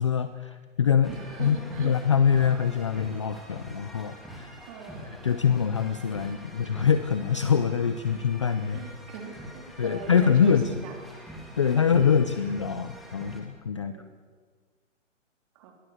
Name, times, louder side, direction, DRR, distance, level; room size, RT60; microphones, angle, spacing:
voice 1, 0.0-1.1 1.4-4.6 5.2-8.8 9.8-10.8 11.6-13.9, left 7 dB, 25° left, 11 dB, 0.5 m, -24 dB
sound 1, 1.0-13.4, equal, ahead, 2.3 m, -44 dB
voice 2, 1.1-2.0 4.7-5.1 6.2-6.3 8.7-11.1 13.8-14.1 15.6-15.7, right 5 dB, 25° right, 3 dB, 3.7 m, -41 dB
22.0 x 17.0 x 7.9 m, 1.5 s
hypercardioid pair, 160°, 39 cm